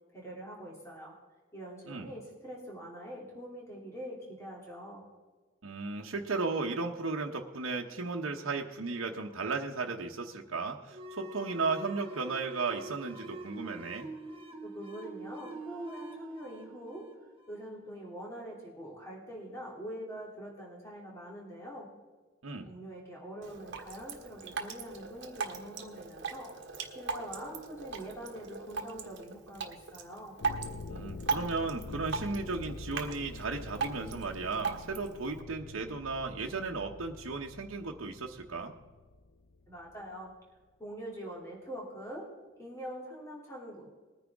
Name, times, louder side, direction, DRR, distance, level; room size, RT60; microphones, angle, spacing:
voice 1, 0.1-1.1 1.5-5.0 14.6-17.1 17.5-21.9 22.7-26.5 26.9-30.4 39.7-40.3 40.8-42.3 42.6-43.9, equal, 15° left, -3 dB, 2.8 m, -44 dB
voice 2, 5.6-14.1 22.4-22.7 30.9-38.7, right 4 dB, 85° right, 1 dB, 1.0 m, -35 dB
sound 1, 10.9-18.1, right 2 dB, 25° right, 1.4 m, -45 dB
Drip, 23.4-35.4, right 5 dB, 60° right, 1.4 m, -39 dB
sound 2, 30.4-39.9, left 3 dB, 60° left, 0.5 m, -45 dB
20.0 x 10.0 x 3.6 m, 1.4 s
head